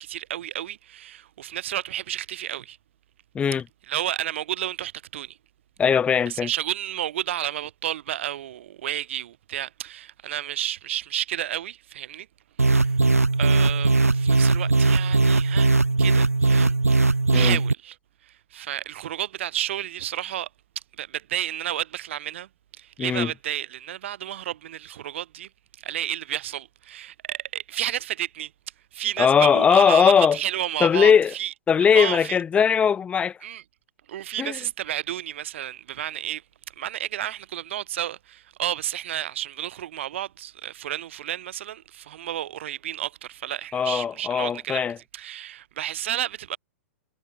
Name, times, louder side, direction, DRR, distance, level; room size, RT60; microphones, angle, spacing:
voice 1, 0.0-2.8 3.9-5.4 6.3-12.3 12.7-13.0 13.4-17.1 17.3-18.0 18.3-20.5 21.0-22.5 22.8-25.5 25.8-28.5 28.9-31.5 31.9-32.4 33.4-33.6 34.1-36.4 36.8-44.9 45.1-46.6, right 12 dB, 55° right, 6.5 m, -31 dB
voice 2, 5.8-6.5 17.3-17.6 23.0-23.3 29.2-30.4 30.8-31.3 31.7-33.4 34.4-34.6 43.7-45.0, left 7 dB, 15° left, 1.0 m, -19 dB
sound 1, 12.6-17.7, right 3 dB, 85° right, 1.1 m, -19 dB
figure-of-eight pair, 110°, 8 cm